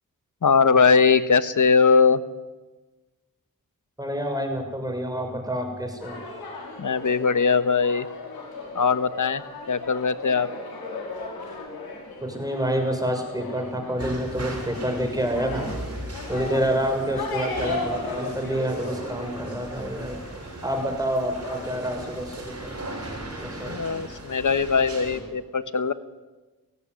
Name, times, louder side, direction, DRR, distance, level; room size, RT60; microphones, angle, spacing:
voice 1, 0.4-2.2 6.8-8.1 8.7-9.4 9.7-10.5 23.7-25.9, left 5 dB, 55° left, 13 dB, 1.3 m, -20 dB
voice 2, 4.0-6.2 12.2-15.7 16.3-20.2 20.6-22.5 23.4-23.9, equal, 10° right, 4 dB, 6.6 m, -28 dB
sound 1, 6.0-22.2, left 3 dB, 85° left, 4.6 m, -37 dB
sound 2, 14.0-25.2, right 2 dB, 40° right, 7.1 m, -37 dB
18.0 x 16.5 x 9.7 m, 1.2 s
cardioid pair, 45°, 36 cm